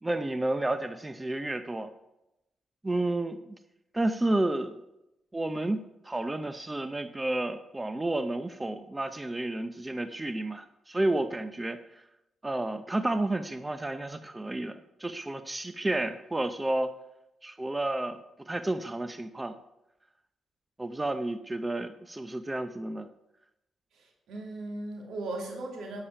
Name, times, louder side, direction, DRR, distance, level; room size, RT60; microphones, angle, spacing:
voice 1, 0.0-1.9 2.8-3.4 3.9-4.8 5.3-5.8 6.0-11.8 12.4-16.9 17.4-19.6 20.8-23.1, right 2 dB, 15° right, 10 dB, 0.6 m, -31 dB
voice 2, 23.9-26.0, right 2 dB, 80° right, 1 dB, 2.3 m, -37 dB
8.6 x 6.7 x 5.5 m, 0.89 s
cardioid pair, 80°, 0 cm